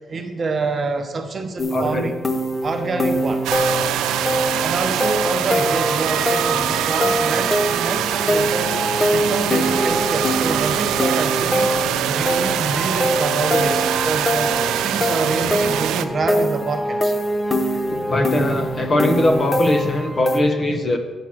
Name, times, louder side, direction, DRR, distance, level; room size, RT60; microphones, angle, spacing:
voice 1, 0.1-2.2 2.6-3.5 4.6-8.8 9.1-11.7 12.1-17.1, right 3 dB, 40° right, 6 dB, 0.9 m, -27 dB
sound 1, 1.6-20.4, equal, 15° left, 0.8 m, -23 dB
voice 2, 1.7-2.1 17.6-21.0, left 1 dB, 35° left, 6 dB, 1.0 m, -21 dB
sound 2, 3.4-16.0, right 11 dB, 90° right, 0.4 m, -23 dB
7.3 x 5.9 x 6.2 m, 1.4 s
cardioid pair, 90°, 0 cm